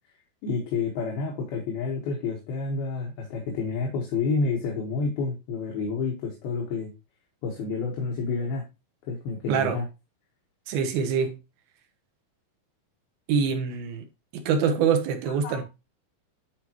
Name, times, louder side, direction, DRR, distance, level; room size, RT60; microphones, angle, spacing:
voice 1, 0.4-6.9 7.4-8.6 9.1-9.8 15.3-15.6, left 4 dB, 75° left, 3.4 m, -29 dB
voice 2, 9.5-9.8 10.7-11.4 13.3-14.0 14.3-15.6, right 6 dB, 75° right, 3.1 m, -25 dB
11.5 x 4.7 x 3.0 m
omnidirectional pair, 4.4 m